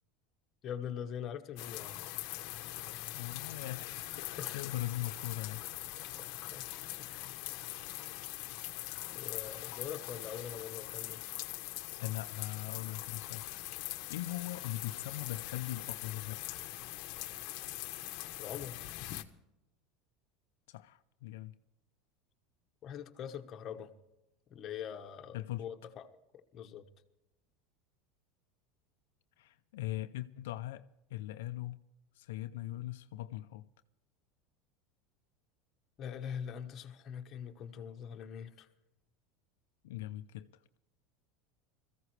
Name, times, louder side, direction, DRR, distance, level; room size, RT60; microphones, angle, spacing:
voice 1, 0.6-2.1 4.4-4.6 6.5-7.3 9.0-11.2 18.4-18.8 22.8-23.9 24.5-26.1 26.3-26.9 36.0-38.7, left 8 dB, 35° left, 1.3 m, -43 dB
sound 1, 1.6-19.2, left 17 dB, 60° left, 1.0 m, -42 dB
voice 2, 3.1-5.6 12.0-13.4 14.1-16.4 20.7-21.5 25.3-25.6 29.4-30.9 31.1-31.8 32.2-33.7 39.8-40.5, left 15 dB, 85° left, 0.5 m, -40 dB
21.0 x 15.0 x 3.3 m
supercardioid pair, 135°, 0 cm